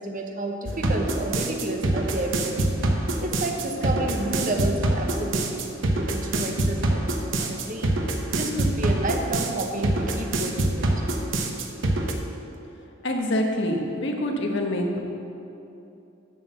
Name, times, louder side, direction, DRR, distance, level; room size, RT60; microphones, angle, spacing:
voice 1, 0.0-2.7 3.2-7.0 7.4-10.8, right 2 dB, 45° right, 3 dB, 0.9 m, -30 dB
sound 1, 0.6-12.1, right 1 dB, 70° right, 0.9 m, -25 dB
voice 2, 13.0-15.0, left 1 dB, 65° left, 1 dB, 1.2 m, -25 dB
7.6 x 6.1 x 7.0 m, 2.9 s
head